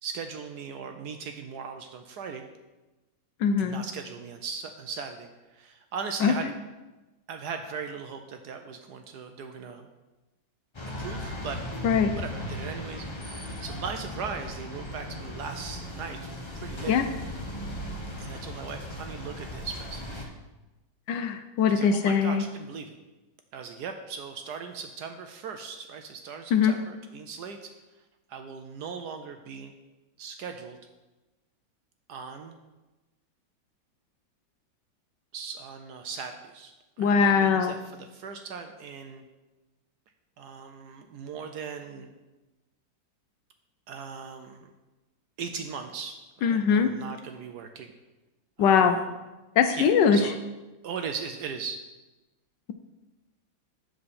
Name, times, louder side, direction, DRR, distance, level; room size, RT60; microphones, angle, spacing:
voice 1, 0.0-2.5 3.6-6.5 7.3-9.9 11.0-11.6 12.1-16.3 16.5-17.0 18.2-20.3 21.7-22.9 23.5-27.7 28.3-29.7 30.2-30.8 32.1-32.6 35.3-39.2 40.4-42.1 43.9-44.7 45.4-47.9 48.6-49.1 49.8-50.4 50.8-51.8, right 6 dB, 70° right, 6 dB, 1.0 m, -38 dB
voice 2, 3.4-3.8 6.2-6.3 11.8-12.1 16.9-17.0 21.1-22.4 26.5-26.7 37.0-37.7 46.4-46.9 48.6-49.0 49.6-50.2, left 6 dB, 75° left, 8 dB, 1.2 m, -21 dB
sound 1, 10.7-20.2, left 1 dB, 30° left, 0.5 m, -37 dB
7.8 x 6.9 x 4.2 m, 1.1 s
omnidirectional pair, 2.1 m